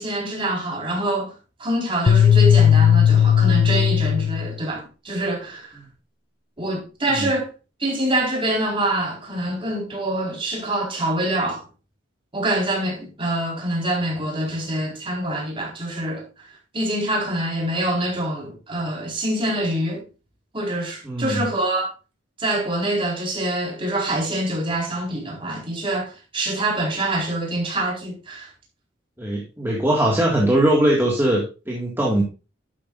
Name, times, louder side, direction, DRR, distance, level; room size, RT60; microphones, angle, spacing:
voice 1, 0.0-1.3 1.6-5.7 6.6-7.5 7.8-11.6 12.3-16.2 16.7-20.0 20.5-21.9 22.4-28.5, right 1 dB, 25° right, 4.5 m, -25 dB
sound 1, 2.1-4.6, left 8 dB, 60° left, 0.6 m, -16 dB
voice 2, 21.0-21.4 29.2-32.2, right 1 dB, 10° right, 1.9 m, -20 dB
11.5 x 8.5 x 2.5 m
head